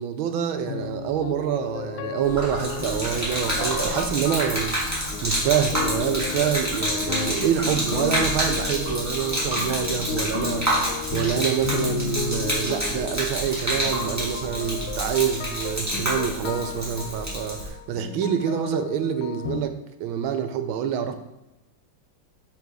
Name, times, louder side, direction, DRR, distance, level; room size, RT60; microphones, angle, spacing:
voice 1, 0.0-19.7 20.0-21.1, right 9 dB, 80° right, 9 dB, 1.5 m, -26 dB
sound 1, 0.7-19.6, left 10 dB, 80° left, 1.3 m, -34 dB
Gurgling / Liquid, 2.2-17.7, right 1 dB, 10° right, 1.9 m, -28 dB
6.0 x 4.0 x 6.1 m, 0.94 s
omnidirectional pair, 2.3 m